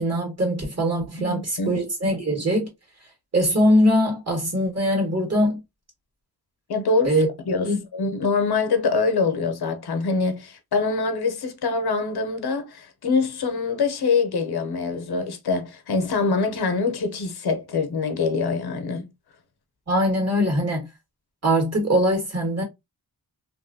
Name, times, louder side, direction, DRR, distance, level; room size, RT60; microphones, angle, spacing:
voice 1, 0.0-2.7 3.3-5.6 7.0-7.3 7.6-7.8 19.9-20.9 21.4-22.6, equal, 40° right, 1.7 m, -22 dB
voice 2, 1.2-1.8 6.7-19.1, left 4 dB, 80° left, 0.7 m, -24 dB
3.0 x 2.6 x 2.6 m
wide cardioid pair, 85°, 38 cm